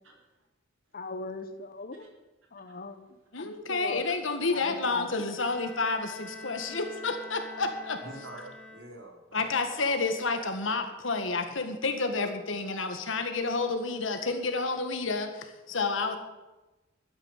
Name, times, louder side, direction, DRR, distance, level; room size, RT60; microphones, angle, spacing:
voice 1, 0.9-2.1 2.5-3.1 3.4-4.0 4.5-5.2, left 3 dB, 50° left, 10 dB, 1.2 m, -38 dB
voice 2, 2.7-3.1 8.0-9.8, right 1 dB, 80° right, 0 dB, 4.1 m, -47 dB
voice 3, 3.3-8.0 9.3-16.2, left 3 dB, 75° left, 6 dB, 1.9 m, -30 dB
Bowed string instrument, 5.3-9.3, left 2 dB, 5° left, 1.9 m, -46 dB
13.0 x 9.9 x 7.4 m, 1.1 s
head